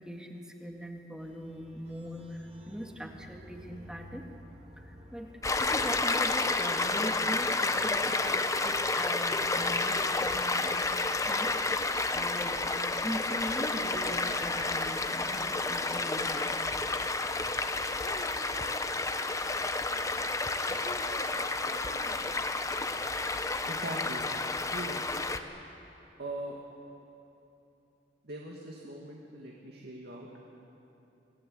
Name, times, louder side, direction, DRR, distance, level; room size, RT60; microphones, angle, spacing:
voice 1, 0.0-4.3 4.8-5.3 5.6-8.3 8.6-10.7 11.2-16.8, equal, 5° right, 2 dB, 2.0 m, -41 dB
sound 1, 1.2-11.2, equal, 35° right, 3.8 m, -55 dB
Stream, 5.4-25.4, left 3 dB, 20° left, 0.9 m, -30 dB
voice 2, 8.0-8.4 23.7-24.3 24.7-25.0 26.2-26.5 28.2-30.3, right 1 dB, 65° right, -2 dB, 2.4 m, -41 dB
sound 2, 17.6-18.9 20.7-22.2, left 1 dB, 40° left, 1.7 m, -46 dB
27.0 x 18.5 x 8.2 m, 2.9 s
head